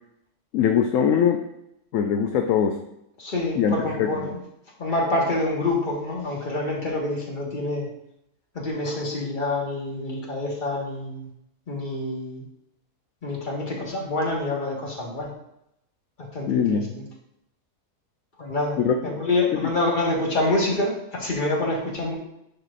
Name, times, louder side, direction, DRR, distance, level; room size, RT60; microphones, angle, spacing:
voice 1, 0.5-1.4 1.9-2.8 3.6-3.7 4.0-4.3 16.5-16.9 18.8-18.9, left 8 dB, 70° left, 5 dB, 0.9 m, -21 dB
voice 2, 3.2-4.4 4.8-7.9 8.5-11.3 11.7-12.4 13.2-15.3 16.2-16.8 18.4-18.8 19.0-22.2, left 2 dB, 35° left, -2 dB, 1.7 m, -26 dB
11.0 x 4.7 x 2.5 m, 0.81 s
omnidirectional pair, 1.6 m